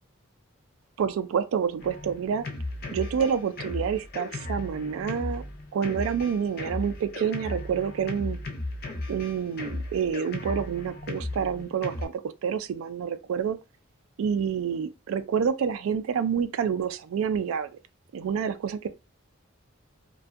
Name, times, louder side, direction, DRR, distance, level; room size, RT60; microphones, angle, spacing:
voice 1, 1.0-2.5 2.9-5.4 5.7-8.4 9.1-13.6 14.2-17.7 18.1-18.9, right 7 dB, 85° right, 0.3 m, -28 dB
Drum kit, 1.8-12.0, left 2 dB, 45° left, 0.5 m, -36 dB
2.5 x 2.2 x 2.4 m
head